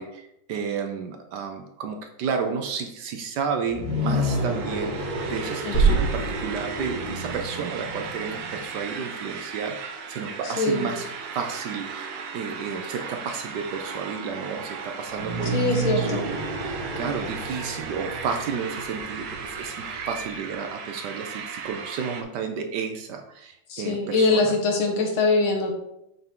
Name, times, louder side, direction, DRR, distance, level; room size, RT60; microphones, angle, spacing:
voice 1, 0.0-16.3 16.6-24.5, right 6 dB, 70° right, 5 dB, 1.1 m, -32 dB
sound 1, 3.6-8.8 15.1-20.7, equal, 25° right, 2.3 m, -31 dB
sound 2, 3.7-22.2, right 6 dB, 85° right, 1.6 m, -37 dB
voice 2, 5.7-6.1 10.4-10.9 15.5-16.2 23.7-25.7, left 3 dB, 80° left, 2 dB, 2.0 m, -23 dB
sound 3, 5.7-7.5, right 4 dB, 35° left, 3.1 m, -24 dB
5.7 x 5.7 x 3.7 m, 0.81 s
omnidirectional pair, 2.2 m